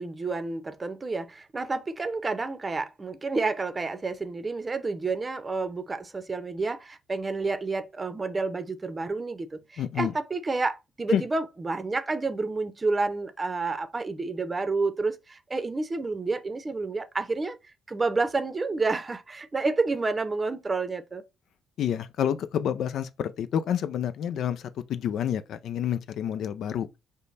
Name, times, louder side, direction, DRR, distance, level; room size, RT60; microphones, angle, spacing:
voice 1, 0.0-17.6 17.9-21.2, right 3 dB, 25° right, 0.7 m, -29 dB
voice 2, 9.8-10.1 11.1-11.2 21.8-26.9, left 9 dB, 70° left, 0.4 m, -28 dB
5.1 x 2.1 x 4.0 m
cardioid pair, 80°, 0 cm